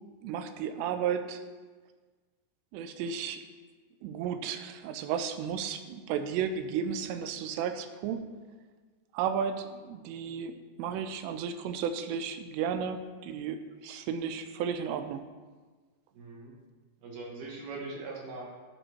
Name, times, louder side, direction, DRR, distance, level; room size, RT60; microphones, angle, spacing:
voice 1, 0.2-1.4 2.7-3.4 4.0-8.2 9.1-15.2, right 7 dB, 85° right, 9 dB, 2.8 m, -33 dB
voice 2, 16.1-16.5 17.0-18.5, right 3 dB, 65° right, -2 dB, 3.1 m, -41 dB
12.5 x 5.3 x 4.5 m, 1.4 s
omnidirectional pair, 5.0 m